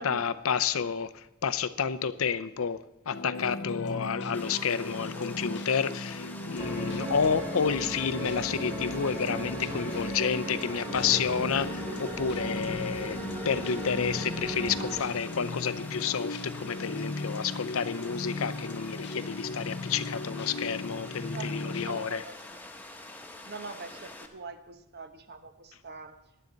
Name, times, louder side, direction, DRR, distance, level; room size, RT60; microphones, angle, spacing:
voice 1, 0.0-2.8 3.1-13.2 13.4-22.2, left 6 dB, 90° left, 12 dB, 0.6 m, -30 dB
sound 1, 3.1-22.0, left 2 dB, 55° left, 0.7 m, -37 dB
Water, 4.3-24.3, left 2 dB, 10° left, 1.1 m, -46 dB
sound 2, 6.6-15.0, right 1 dB, 25° right, 2.4 m, -38 dB
voice 2, 7.0-7.5 21.3-22.6 23.4-26.2, right 4 dB, 55° right, 8 dB, 1.0 m, -44 dB
18.5 x 11.0 x 4.0 m, 0.92 s
head